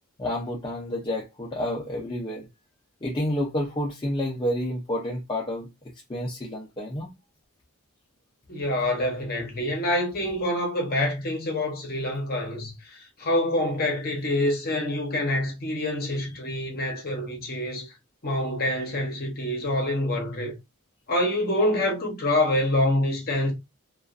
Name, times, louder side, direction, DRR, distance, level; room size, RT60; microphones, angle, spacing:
voice 1, 0.2-2.5 3.0-5.7 6.1-7.1, left 1 dB, 20° left, 0.4 m, -29 dB
voice 2, 8.5-17.9 18.2-20.5 21.1-23.5, left 1 dB, 45° left, 0.8 m, -26 dB
2.4 x 2.3 x 2.4 m
head